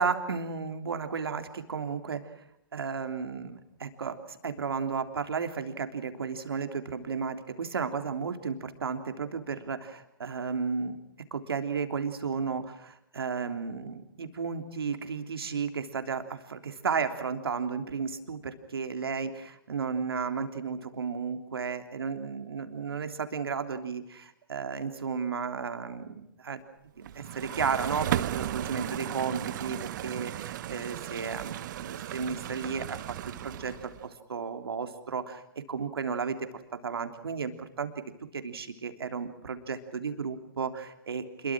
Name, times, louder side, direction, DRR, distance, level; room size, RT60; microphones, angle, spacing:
voice 1, 0.0-2.2 2.7-11.0 11.3-26.6 27.0-33.0 33.4-33.7 34.0-35.4 35.7-36.5 36.8-37.9 38.3-41.5, right 5 dB, 85° right, 7 dB, 3.4 m, -33 dB
sound 1, 27.1-34.1, right 12 dB, 55° right, 1.3 m, -35 dB
28.0 x 22.5 x 6.2 m, 0.80 s
hypercardioid pair, 130°, 12 cm